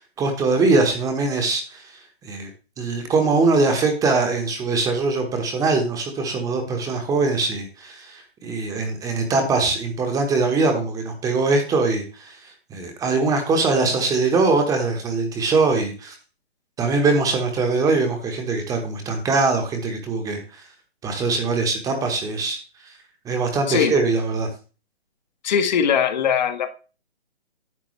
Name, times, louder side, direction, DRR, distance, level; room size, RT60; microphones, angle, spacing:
voice 1, 0.0-1.9 2.2-2.5 2.8-12.4 12.7-16.1 16.8-20.4 21.0-22.6 23.2-24.5, right 3 dB, 10° right, 4 dB, 1.2 m, -22 dB
voice 2, 25.4-26.7, left 7 dB, 45° left, 8 dB, 1.4 m, -20 dB
10.5 x 8.1 x 3.2 m, 0.34 s
hypercardioid pair, 140°, 32 cm